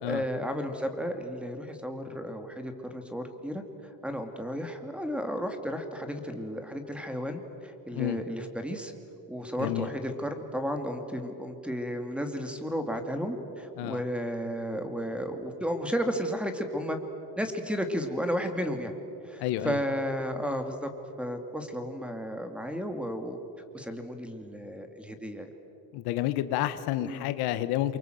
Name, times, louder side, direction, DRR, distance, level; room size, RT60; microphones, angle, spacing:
voice 1, 0.0-3.6 4.0-8.9 9.3-17.0 17.4-18.9 19.2-20.9 21.2-23.4 23.7-25.5 27.0-27.3, equal, 5° right, 6 dB, 2.3 m, -33 dB
voice 2, 19.4-19.8 25.9-28.0, left 14 dB, 85° left, 12 dB, 1.2 m, -30 dB
27.5 x 24.0 x 7.8 m, 2.8 s
cardioid pair, 130°, 37 cm